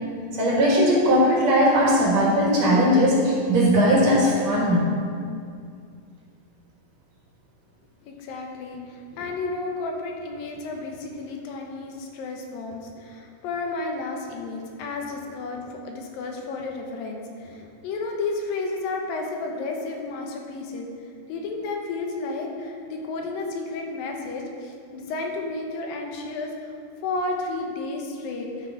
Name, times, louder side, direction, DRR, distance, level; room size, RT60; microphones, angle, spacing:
voice 1, 0.4-4.9, equal, 55° right, -4 dB, 2.7 m, -19 dB
voice 2, 8.0-20.9 21.3-26.7 27.0-28.7, left 3 dB, 85° left, 1 dB, 2.8 m, -32 dB
12.5 x 6.2 x 4.9 m, 2.3 s
omnidirectional pair, 4.0 m